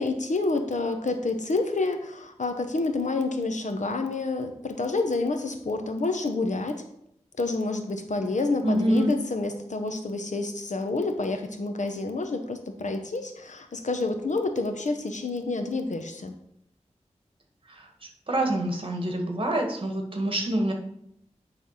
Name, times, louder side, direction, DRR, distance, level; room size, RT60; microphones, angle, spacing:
voice 1, 0.0-6.8 7.4-16.4, left 3 dB, 80° left, 6 dB, 0.9 m, -28 dB
voice 2, 8.6-9.1 17.7-20.7, right 1 dB, 45° right, 2 dB, 1.5 m, -26 dB
9.5 x 3.4 x 5.6 m, 0.75 s
wide cardioid pair, 80°, 12 cm